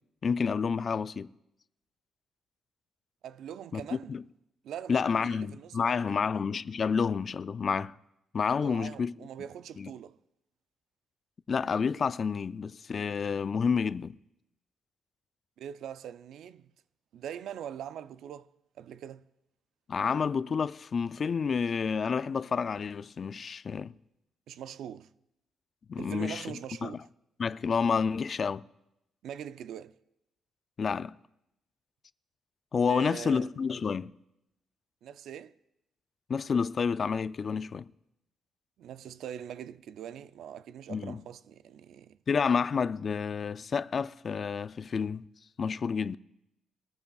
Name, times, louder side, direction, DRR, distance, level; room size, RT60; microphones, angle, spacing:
voice 1, 0.2-1.3 3.7-4.2 4.9-8.0 8.3-9.1 9.8-9.9 11.5-14.2 19.9-23.9 25.9-26.5 26.8-27.0 27.4-28.7 30.8-31.1 32.7-34.1 36.3-37.9 40.9-41.2 42.3-45.2 45.6-46.2, left 6 dB, 45° left, 0.3 m, -29 dB
voice 2, 3.2-4.1 4.6-6.3 8.6-10.2 15.6-16.7 17.1-18.5 18.8-19.3 24.5-25.1 26.0-27.0 29.2-30.0 32.9-33.5 35.0-35.6 38.8-42.2, right 9 dB, 75° right, 0.4 m, -42 dB
23.5 x 14.0 x 2.4 m
cardioid pair, 90°, 0 cm